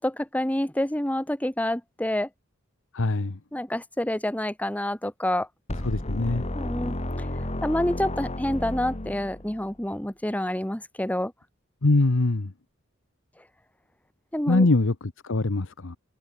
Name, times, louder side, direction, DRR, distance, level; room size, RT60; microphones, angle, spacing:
voice 1, 0.0-2.3 3.5-5.5 6.5-6.9 7.6-11.3 14.3-14.7, left 1 dB, 5° left, 1.5 m, -27 dB
voice 2, 2.9-3.4 5.8-6.5 11.8-12.5 14.5-16.0, left 2 dB, 65° left, 1.1 m, -23 dB
sound 1, 5.7-9.7, left 1 dB, 30° left, 2.0 m, -32 dB
head